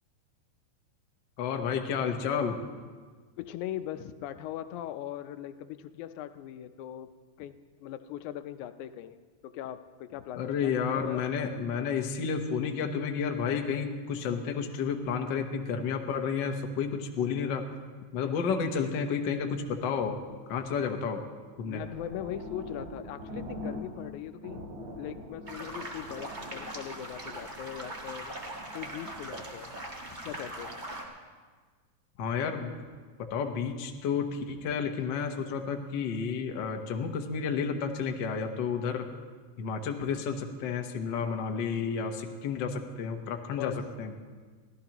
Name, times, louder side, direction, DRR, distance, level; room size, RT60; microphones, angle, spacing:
voice 1, 1.4-2.6 10.4-17.6 18.1-20.2 20.5-21.2 21.6-21.8 32.2-32.7 33.2-39.1 39.6-44.1, left 6 dB, 60° left, 3 dB, 1.2 m, -31 dB
voice 2, 3.4-7.1 7.4-9.2 9.4-10.5 10.9-11.2 18.2-18.5 21.7-28.3 28.7-29.8 30.2-30.8 43.6-43.8, left 11 dB, 85° left, 10 dB, 2.1 m, -40 dB
sound 1, 19.5-20.9 21.4-21.5 21.7-24.2 24.4-27.5, left 1 dB, 85° right, 3.7 m, -43 dB
sound 2, 25.5-31.0, right 1 dB, 25° right, 1.1 m, -41 dB
24.0 x 15.5 x 3.0 m, 1.5 s
omnidirectional pair, 3.4 m